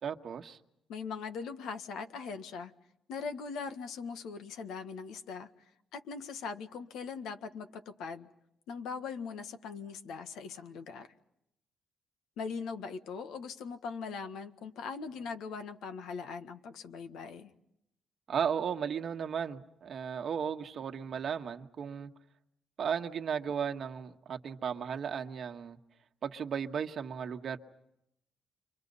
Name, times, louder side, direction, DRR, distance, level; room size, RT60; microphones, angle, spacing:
voice 1, 0.0-0.6 18.3-22.1 22.8-25.8 26.2-27.6, right 7 dB, 55° right, 1.5 m, -35 dB
voice 2, 0.9-2.7 3.1-5.5 5.9-8.3 8.7-11.1 12.4-17.5, left 5 dB, 85° left, 1.6 m, -40 dB
29.0 x 25.0 x 5.5 m
cardioid pair, 90°, 0 cm